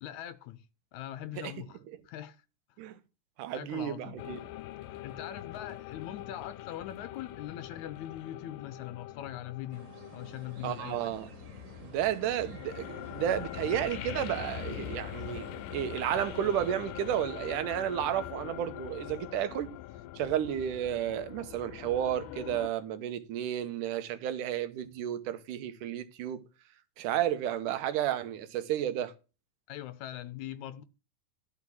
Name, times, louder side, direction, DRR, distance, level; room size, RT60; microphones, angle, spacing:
voice 1, 0.0-0.6 0.9-1.8 2.1-2.4 3.5-4.2 4.9-11.1 29.7-30.8, left 12 dB, 75° left, 1.9 m, -41 dB
voice 2, 3.4-4.4 10.6-11.3 11.8-19.7 20.2-26.4 27.0-29.1, right 10 dB, 75° right, 2.4 m, -32 dB
sound 1, 4.2-22.7, left 14 dB, 90° left, 2.4 m, -43 dB
sound 2, 9.7-16.7, right 3 dB, 50° right, 3.2 m, -52 dB
12.5 x 4.8 x 7.1 m
omnidirectional pair, 3.8 m